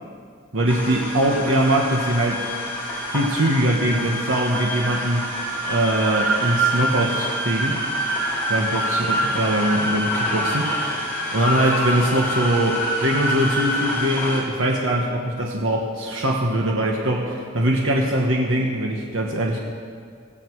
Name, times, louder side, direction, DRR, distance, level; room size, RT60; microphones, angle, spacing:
voice 1, 0.5-2.5 3.1-5.3 5.7-7.8 8.5-19.6, right 1 dB, 70° right, 0 dB, 1.4 m, -22 dB
sound 1, 0.7-14.4, equal, 10° left, 4.0 m, -26 dB
17.5 x 15.5 x 4.7 m, 2.1 s
head